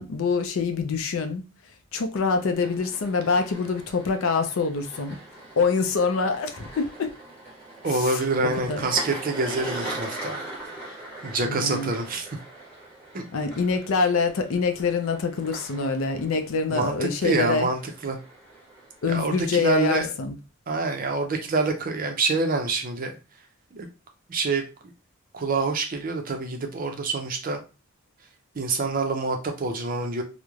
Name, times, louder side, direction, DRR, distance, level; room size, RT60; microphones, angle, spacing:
voice 1, 0.0-1.4 1.9-5.2 5.6-7.1 7.9-8.2 8.6-8.8 11.4-11.9 13.3-17.7 19.0-20.3, left 4 dB, 70° left, 0.4 m, -25 dB
sound 1, 2.3-19.2, right 2 dB, 10° left, 1.0 m, -41 dB
voice 2, 7.8-10.4 11.2-12.3 13.1-13.2 16.7-17.0 17.2-18.2 19.0-20.1 20.7-23.1 23.7-23.9 24.3-24.6 25.3-27.6 28.6-30.2, right 3 dB, 40° right, 0.4 m, -26 dB
3.0 x 2.1 x 2.3 m
head